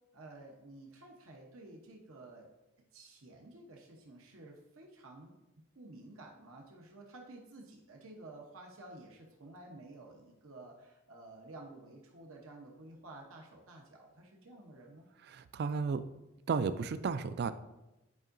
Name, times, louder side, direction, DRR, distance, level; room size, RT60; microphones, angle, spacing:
voice 1, 0.1-2.5 2.9-15.1, right 2 dB, 80° right, 0 dB, 0.9 m, -52 dB
voice 2, 15.2-16.1 16.5-17.5, right 5 dB, 50° right, 13 dB, 0.3 m, -33 dB
9.5 x 4.6 x 2.6 m, 0.98 s
head